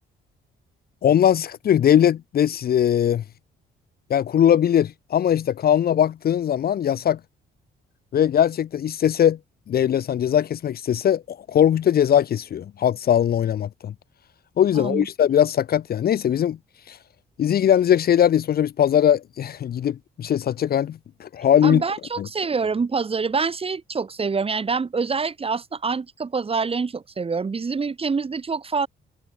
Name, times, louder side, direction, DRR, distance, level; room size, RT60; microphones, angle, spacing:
voice 1, 1.0-3.2 4.1-7.2 8.1-9.4 9.7-13.9 14.6-16.6 16.9-17.0 17.4-21.8 22.2-22.3, left 9 dB, 50° left, 0.6 m, -20 dB
voice 2, 14.7-15.1 21.6-28.9, right 5 dB, 30° right, 1.3 m, -26 dB
cardioid pair, 90°, 20 cm